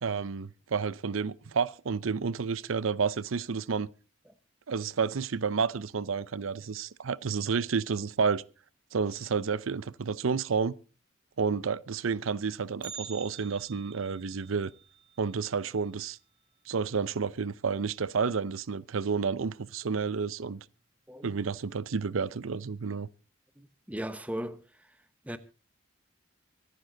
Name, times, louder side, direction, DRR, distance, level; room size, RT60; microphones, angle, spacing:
voice 1, 0.0-3.9 4.7-8.4 8.9-10.7 11.4-14.7 15.2-16.2 16.7-20.6 21.2-23.1, right 5 dB, 85° right, 0.6 m, -30 dB
Bell, 12.8-16.9 17.2-17.3 17.8-17.9 18.7-18.8 19.5-19.8 20.2-20.3, right 7 dB, 25° right, 2.0 m, -49 dB
voice 2, 23.6-24.9 25.2-25.4, right 1 dB, 5° right, 0.9 m, -38 dB
25.0 x 9.6 x 3.9 m
head